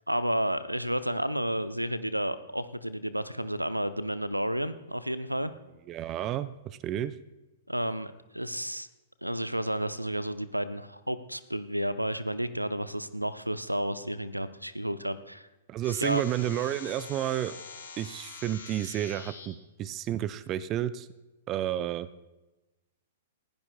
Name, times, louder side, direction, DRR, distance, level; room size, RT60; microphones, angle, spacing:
voice 1, 0.0-5.5 7.7-8.9 9.2-15.5 16.0-16.2, equal, 90° right, 13 dB, 0.7 m, -31 dB
voice 2, 5.9-7.1 15.7-17.6 18.0-21.1 21.5-22.1, right 12 dB, 25° right, 16 dB, 0.5 m, -31 dB
sound 1, 15.8-19.5, left 5 dB, 65° left, 4.0 m, -45 dB
29.0 x 15.5 x 2.3 m, 1.1 s
figure-of-eight pair, 105°, 0 cm